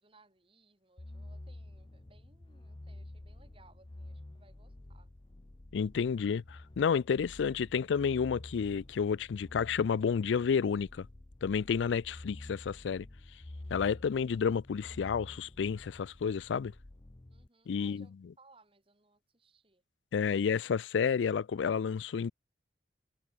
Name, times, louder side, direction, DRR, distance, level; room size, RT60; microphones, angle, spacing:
voice 1, 0.0-5.1 17.3-19.8, right 3 dB, 30° right, 3.6 m, -64 dB
sound 1, 1.0-17.5, left 1 dB, 30° left, 0.6 m, -50 dB
voice 2, 5.7-11.1 11.4-13.1 13.7-16.7 17.7-18.1 20.1-22.3, left 6 dB, 90° left, 0.4 m, -30 dB
head